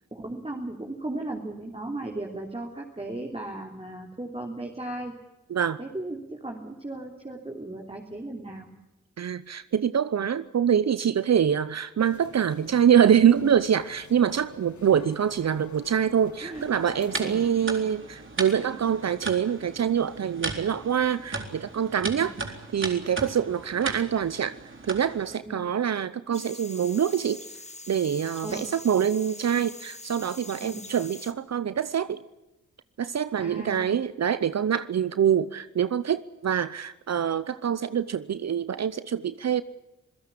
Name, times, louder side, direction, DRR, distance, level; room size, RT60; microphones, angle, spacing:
voice 1, 0.1-5.2 5.8-8.7 16.4-16.7 17.2-17.4 22.0-22.3 25.4-25.7 28.4-28.7 30.6-30.8 33.4-33.9, right 2 dB, 20° right, 0 dB, 3.6 m, -36 dB
voice 2, 9.2-22.3 22.7-24.5 24.8-27.4 27.9-32.2 33.0-39.6, right 8 dB, 60° right, 15 dB, 0.8 m, -25 dB
sound 1, 12.0-17.5, left 5 dB, 70° left, 2.4 m, -47 dB
sound 2, 16.5-25.4, right 3 dB, 40° right, 4.0 m, -37 dB
sound 3, 26.3-31.3, left 2 dB, 20° left, 2.1 m, -43 dB
27.0 x 16.0 x 8.6 m, 0.95 s
cardioid pair, 50°, 30 cm